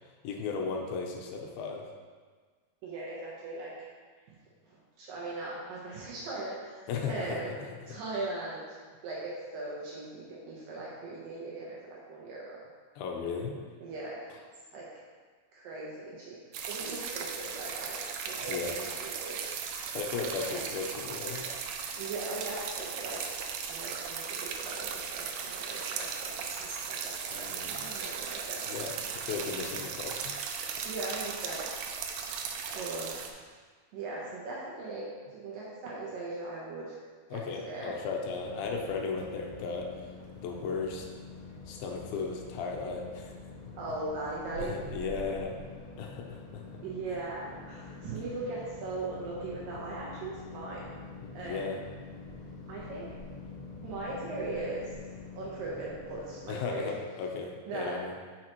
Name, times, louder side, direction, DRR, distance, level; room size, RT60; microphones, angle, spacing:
voice 1, 0.2-1.9 6.9-7.9 13.0-13.6 18.5-18.8 19.9-21.5 27.3-27.9 28.7-29.0 29.3-30.3 37.3-39.9 40.4-41.1 41.7-43.4 44.6-45.6 46.0-46.6 51.2-51.8 56.5-58.1, left 5 dB, 80° left, 1 dB, 2.6 m, -36 dB
voice 2, 2.8-3.7 4.7-7.5 7.9-8.6 9.0-12.6 13.8-14.2 14.7-14.9 15.5-16.4 16.7-18.0 18.3-19.5 20.5-20.8 22.0-23.4 23.7-28.7 30.8-31.6 32.7-33.1 33.9-37.0 37.3-37.9 43.8-44.7 46.8-50.8 51.3-51.8 52.7-53.1 53.8-54.9 55.3-56.9 57.7-58.0, right 2 dB, 70° right, -5 dB, 2.5 m, -39 dB
sound 1, 16.5-33.3, right 6 dB, 90° right, 1.8 m, -37 dB
sound 2, 38.2-56.6, left 3 dB, 60° left, 1.8 m, -46 dB
8.7 x 6.4 x 3.0 m, 1.5 s
omnidirectional pair, 4.4 m